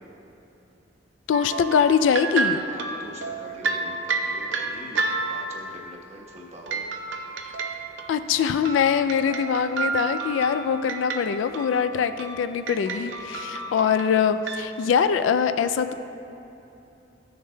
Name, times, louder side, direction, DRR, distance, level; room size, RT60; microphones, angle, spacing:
voice 1, 1.3-2.6 8.1-15.9, left 7 dB, 85° left, 11 dB, 0.3 m, -23 dB
sound 1, 1.3-5.7 6.7-14.6, right 4 dB, 75° right, 0.6 m, -31 dB
voice 2, 2.7-6.8 9.0-9.4 12.9-13.5, right 1 dB, 35° right, -2 dB, 1.1 m, -44 dB
15.0 x 6.6 x 2.2 m, 2.9 s
head